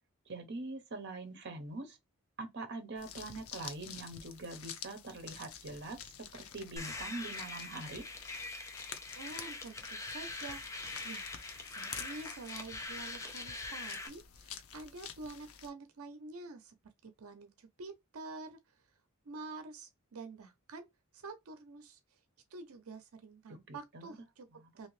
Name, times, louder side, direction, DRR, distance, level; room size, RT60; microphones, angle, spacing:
voice 1, 0.3-2.0 2.4-6.0 6.3-8.0 23.5-24.1 24.6-24.7, right 2 dB, 55° right, 0.9 m, -43 dB
sound 1, 3.0-15.7, left 8 dB, 85° left, 0.6 m, -49 dB
sound 2, 6.8-14.1, left 3 dB, 15° left, 0.6 m, -43 dB
voice 2, 9.2-10.6 11.0-11.3 11.7-16.7 17.0-18.8 19.2-20.9 21.1-22.0 22.5-24.5 24.8-24.9, right 3 dB, 90° right, 0.7 m, -48 dB
2.9 x 2.8 x 3.1 m
head